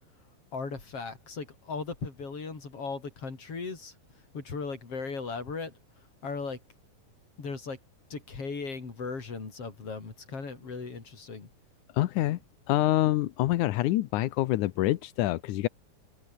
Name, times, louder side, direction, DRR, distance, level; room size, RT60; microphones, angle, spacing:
voice 1, 0.5-4.0 4.3-5.7 6.2-6.6 7.4-7.8 8.1-11.5, left 4 dB, 40° left, 5.4 m, -37 dB
voice 2, 11.9-12.4 12.7-15.7, left 16 dB, 75° left, 1.9 m, -26 dB
omnidirectional pair, 4.3 m